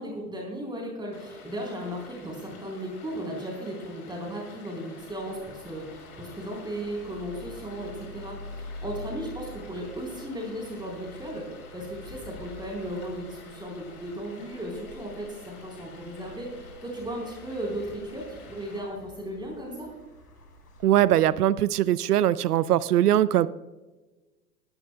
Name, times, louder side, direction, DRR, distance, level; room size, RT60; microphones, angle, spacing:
voice 1, 0.0-19.9, right 1 dB, 10° right, -2 dB, 3.7 m, -36 dB
Stream, 1.1-18.8, left 4 dB, 70° left, 4.1 m, -50 dB
sound 1, 4.9-21.3, left 2 dB, 90° left, 3.3 m, -47 dB
voice 2, 20.8-23.5, right 12 dB, 85° right, 19 dB, 0.6 m, -21 dB
18.5 x 12.5 x 2.2 m, 1.2 s
hypercardioid pair, 100°, 45 cm